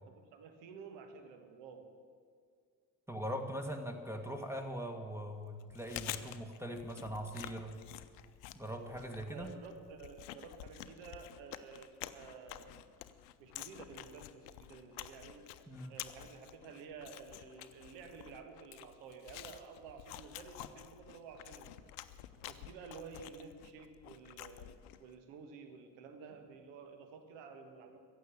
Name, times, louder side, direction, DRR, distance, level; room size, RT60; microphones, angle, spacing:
voice 1, 0.1-1.9 9.3-12.8 13.4-15.5 15.9-21.9 22.4-24.7 25.0-28.0, right 5 dB, 60° right, 6 dB, 1.6 m, -52 dB
voice 2, 3.1-7.8 8.5-9.5 15.7-15.9, equal, 5° right, 5 dB, 1.7 m, -41 dB
Chewing mastication, 5.6-25.1, left 14 dB, 65° left, 0.8 m, -49 dB
15.0 x 8.0 x 8.8 m, 2.1 s
figure-of-eight pair, 50°, 50 cm